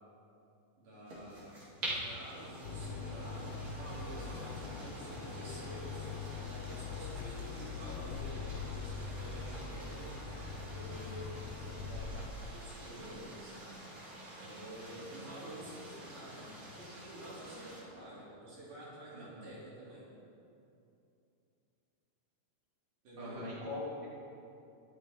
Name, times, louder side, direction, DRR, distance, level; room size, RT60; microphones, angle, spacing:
voice 1, 0.8-6.1 6.5-10.1 10.7-13.6 14.4-20.1 23.0-23.5, right 1 dB, 75° right, -7 dB, 4.2 m, -49 dB
sound 1, 1.1-17.8, right 1 dB, 55° right, 3.7 m, -47 dB
sound 2, 2.6-12.3, left 5 dB, 75° left, 1.5 m, -42 dB
voice 2, 14.9-15.3 19.1-19.5 23.2-24.1, left 2 dB, 10° right, -8 dB, 2.5 m, -42 dB
22.0 x 7.4 x 3.5 m, 2.7 s
omnidirectional pair, 3.7 m